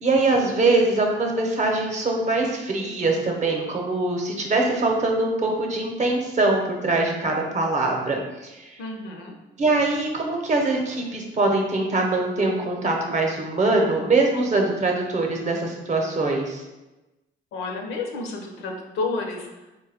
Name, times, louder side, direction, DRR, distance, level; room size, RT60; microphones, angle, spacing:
voice 1, 0.0-8.8 9.6-16.6, right 2 dB, 35° right, 1 dB, 0.7 m, -23 dB
voice 2, 8.8-9.4 17.5-19.8, left 3 dB, 85° left, 2 dB, 0.7 m, -31 dB
4.0 x 2.2 x 3.4 m, 1.1 s
cardioid pair, 90°, 20 cm